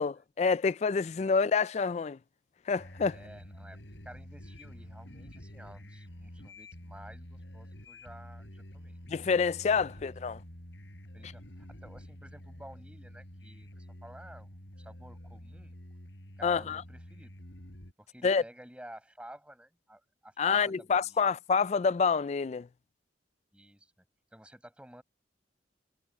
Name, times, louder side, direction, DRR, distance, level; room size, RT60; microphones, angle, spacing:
voice 1, 0.0-2.2 2.7-3.2 9.1-10.4 16.4-16.8 18.2-18.4 20.4-22.7, left 5 dB, 35° left, 0.3 m, -27 dB
voice 2, 1.0-1.5 3.1-9.0 9.6-9.7 10.0-10.1 11.1-14.5 14.8-15.7 16.4-17.3 18.0-21.3 23.5-23.9 24.3-25.0, right 1 dB, 5° right, 6.5 m, -52 dB
sound 1, 2.8-17.9, equal, 80° left, 6.9 m, -48 dB
head